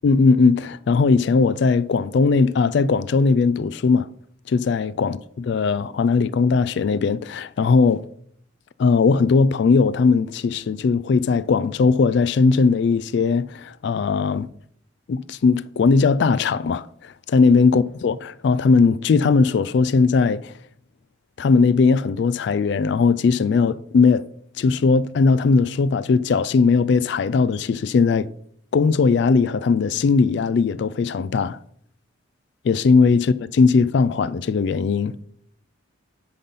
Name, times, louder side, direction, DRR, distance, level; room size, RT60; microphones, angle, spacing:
voice 1, 0.0-4.1 4.5-8.0 8.8-14.5 15.1-20.5 21.4-24.2 24.6-28.3 28.7-31.6 32.6-35.2, left 4 dB, 55° left, 0.3 m, -19 dB
10.0 x 4.0 x 5.5 m
head